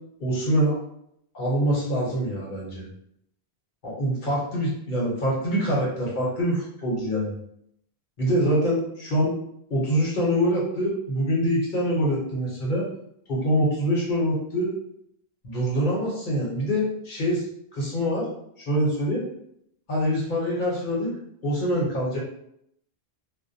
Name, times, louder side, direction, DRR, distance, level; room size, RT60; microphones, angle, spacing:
voice 1, 0.2-0.7 1.3-2.9 3.8-7.3 8.2-9.3 9.7-12.9 13.3-14.7 15.4-17.5 17.7-18.3 18.6-19.2 19.9-21.1 21.4-22.2, equal, 55° left, -4 dB, 0.8 m, -24 dB
2.5 x 2.1 x 2.6 m, 0.74 s
omnidirectional pair, 1.1 m